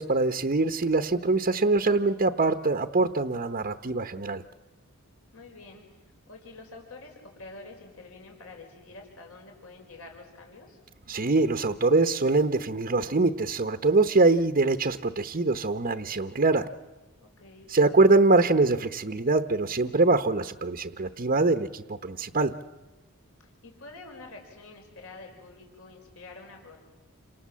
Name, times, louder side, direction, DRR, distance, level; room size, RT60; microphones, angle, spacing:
voice 1, 0.0-4.4 11.1-16.7 17.7-22.5, right 3 dB, 40° right, 8 dB, 0.9 m, -23 dB
voice 2, 5.3-10.8 17.2-17.7 23.4-26.8, left 3 dB, 70° left, 2 dB, 5.1 m, -47 dB
29.0 x 27.0 x 7.5 m, 1.1 s
head